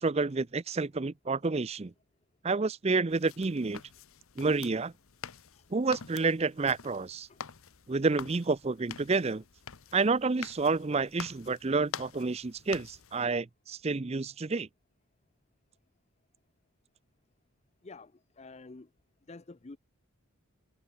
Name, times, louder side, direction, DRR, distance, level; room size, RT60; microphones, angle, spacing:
voice 1, 0.0-1.9 2.4-3.8 4.4-4.9 5.7-7.3 7.9-9.4 9.9-14.7, right 4 dB, 30° right, 0.5 m, -29 dB
sound 1, 3.1-13.2, left 7 dB, 70° left, 1.1 m, -46 dB
voice 2, 18.4-18.9 19.3-19.8, left 3 dB, 30° left, 0.5 m, -48 dB
head